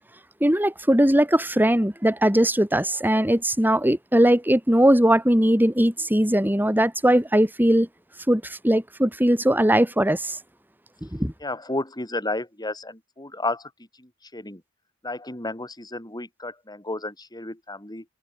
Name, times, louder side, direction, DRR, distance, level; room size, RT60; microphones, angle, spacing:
voice 1, 0.4-7.9 8.3-10.4 11.0-11.3, right 1 dB, 10° right, 4.2 m, -20 dB
voice 2, 11.4-13.7 14.0-14.6 15.0-18.0, left 2 dB, 20° left, 7.4 m, -32 dB
head